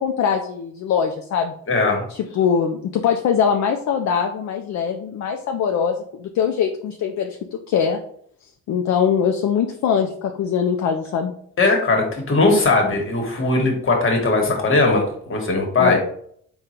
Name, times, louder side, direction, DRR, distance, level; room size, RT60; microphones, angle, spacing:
voice 1, 0.0-1.5 2.1-8.0 8.7-11.3 15.8-16.0, left 7 dB, 65° left, 3 dB, 0.5 m, -22 dB
voice 2, 1.7-2.1 11.6-15.0 15.3-16.0, left 3 dB, 45° left, 2 dB, 1.3 m, -18 dB
3.7 x 2.4 x 4.2 m, 0.63 s
cardioid pair, 90°, 30 cm